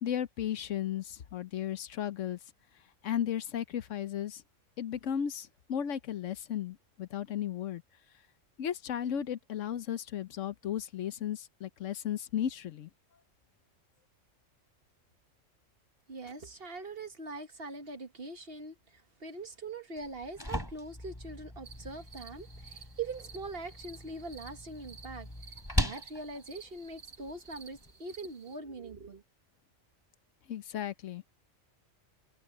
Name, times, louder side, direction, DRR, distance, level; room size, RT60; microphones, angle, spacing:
voice 1, 0.0-2.4 3.0-4.4 4.8-7.8 8.6-12.9 30.5-31.2, left 9 dB, 70° left, 1.1 m, -35 dB
voice 2, 16.1-18.8 19.2-25.3 25.8-29.2, right 3 dB, 50° right, 1.7 m, -42 dB
sound 1, 20.0-27.9, equal, 15° left, 3.8 m, -39 dB
Carrapichana - Night ambiance Crickets Dogs Church, 21.6-28.6, right 6 dB, 85° right, 2.5 m, -54 dB
omnidirectional pair, 1.3 m